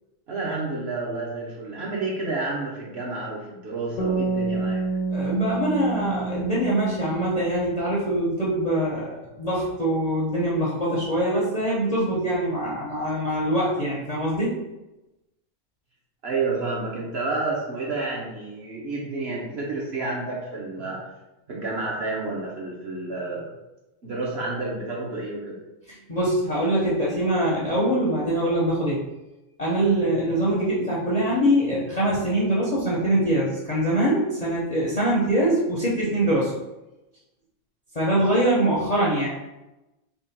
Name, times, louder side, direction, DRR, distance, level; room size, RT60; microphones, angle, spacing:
voice 1, 0.3-4.8 16.2-21.0 21.5-23.5 24.0-25.5, right 3 dB, 50° right, -4 dB, 0.9 m, -30 dB
sound 1, 4.0-8.2, right 3 dB, 75° left, 1.2 m, -29 dB
voice 2, 5.1-14.5 25.9-29.0 29.6-36.5 37.9-39.3, right 1 dB, 40° left, -6 dB, 0.6 m, -23 dB
3.6 x 2.3 x 4.0 m, 0.99 s
omnidirectional pair, 1.6 m